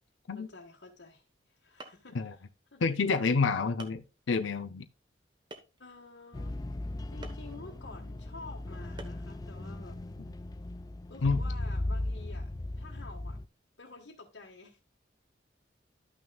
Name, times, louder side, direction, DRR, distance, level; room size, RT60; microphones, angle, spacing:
voice 1, 0.3-2.4 2.7-2.8 5.8-6.6 7.1-10.0 11.1-12.5 12.8-13.4 13.8-14.8, left 3 dB, 70° left, 1.5 m, -50 dB
sound 1, 1.4-1.5 1.8-2.2 3.0-3.1 3.8-4.1 5.5-5.9 7.2-7.5 9.0-9.3, right 2 dB, 25° right, 1.1 m, -47 dB
voice 2, 2.8-4.9 11.2-11.4, left 4 dB, 90° left, 0.6 m, -28 dB
sound 2, 6.3-13.5, left 1 dB, 20° left, 0.3 m, -37 dB
12.5 x 6.0 x 2.3 m
head